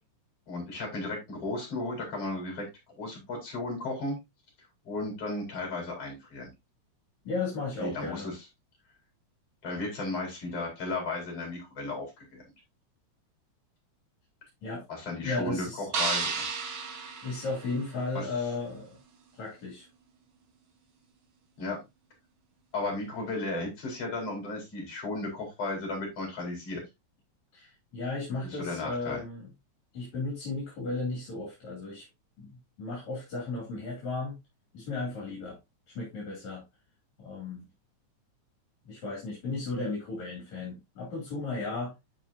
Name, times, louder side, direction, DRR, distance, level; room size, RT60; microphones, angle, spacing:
voice 1, 0.5-2.7 3.0-4.2 4.9-6.5 7.8-8.3 9.6-12.4 14.9-15.6 16.0-16.5 18.2-18.3 21.6-21.8 22.7-26.8 28.5-29.2, left 2 dB, 55° left, 0 dB, 5.6 m, -34 dB
voice 2, 7.3-8.3 14.6-14.8 15.2-15.9 17.2-19.0 19.3-19.9 27.5-29.5 29.9-32.1 32.4-34.4 34.7-35.6 35.9-36.6 37.2-37.7 38.9-41.9, left 3 dB, 70° left, -2 dB, 4.0 m, -35 dB
sound 1, 15.9-18.2, right 5 dB, 50° right, 1.9 m, -33 dB
12.5 x 5.2 x 2.6 m, 0.22 s
omnidirectional pair, 3.3 m